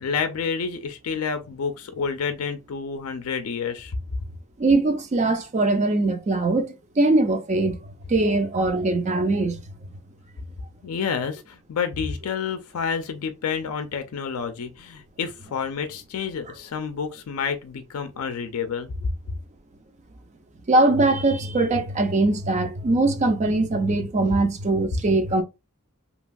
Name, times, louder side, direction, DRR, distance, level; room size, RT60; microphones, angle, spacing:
voice 1, 0.0-4.0 10.8-19.1, left 6 dB, 75° left, 0.4 m, -29 dB
voice 2, 4.6-7.8 8.1-9.6 20.7-25.4, right 2 dB, 30° right, 0.4 m, -21 dB
2.8 x 2.3 x 2.5 m
head